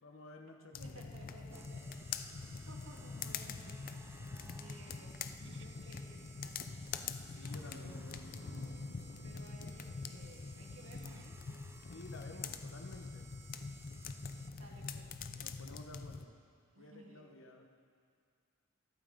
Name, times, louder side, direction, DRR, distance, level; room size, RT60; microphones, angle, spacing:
voice 1, 0.0-1.0 4.2-4.3 7.3-8.5 11.9-13.3 15.4-16.4 16.8-17.7, left 2 dB, 80° left, 3 dB, 1.2 m, -53 dB
sound 1, 0.7-16.2, left 5 dB, 45° left, 0.5 m, -45 dB
voice 2, 0.8-4.3 4.6-6.9 7.3-8.0 9.2-11.4 11.9-12.0 12.3-13.0 14.4-15.2 16.7-17.4, right 1 dB, 85° right, 0 dB, 1.8 m, -58 dB
sound 2, 1.5-14.9, right 3 dB, 15° right, 0.5 m, -59 dB
sound 3, 5.4-6.0 8.3-11.2, right 3 dB, 65° right, 0.5 m, -60 dB
21.5 x 8.8 x 3.7 m, 2.2 s
head